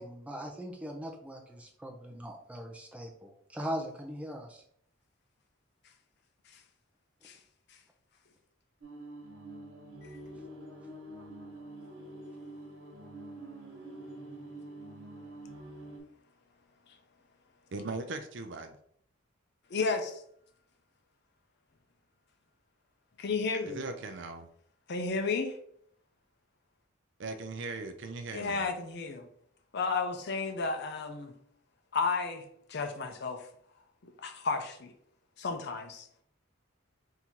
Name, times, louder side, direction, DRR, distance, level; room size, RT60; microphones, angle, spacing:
voice 1, 0.0-4.6, equal, 5° right, 1 dB, 0.6 m, -40 dB
sound 1, 8.8-16.0, right 1 dB, 90° right, 1.3 m, -46 dB
voice 2, 17.7-18.8 23.7-24.5 27.2-28.7, right 3 dB, 60° right, 7 dB, 0.5 m, -39 dB
voice 3, 19.7-20.2 23.2-23.8 24.9-25.6 28.3-29.3 29.7-31.3 31.9-32.4 32.7-33.5 34.0-34.9 35.4-36.1, left 4 dB, 55° left, 6 dB, 0.6 m, -32 dB
3.6 x 2.7 x 4.5 m, 0.66 s
head